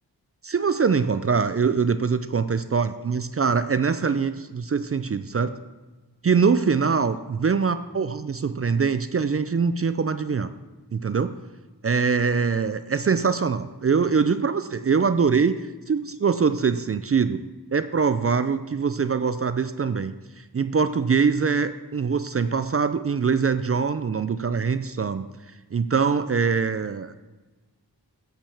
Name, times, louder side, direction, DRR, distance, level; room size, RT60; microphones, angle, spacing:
voice 1, 0.4-5.6 6.2-10.5 10.9-11.3 11.8-15.6 15.9-17.4 17.7-25.3 25.7-27.1, right 5 dB, 35° right, 12 dB, 0.5 m, -23 dB
8.7 x 5.2 x 7.1 m, 1.2 s
cardioid pair, 55°, 40 cm